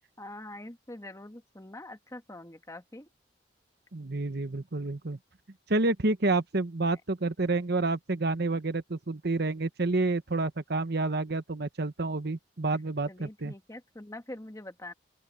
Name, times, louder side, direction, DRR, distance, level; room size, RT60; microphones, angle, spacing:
voice 1, 0.2-3.1 6.9-7.0 13.1-14.9, left 1 dB, 20° left, 1.7 m, -44 dB
voice 2, 3.9-5.2 5.7-13.5, right 2 dB, 60° right, 1.1 m, -29 dB
open air
head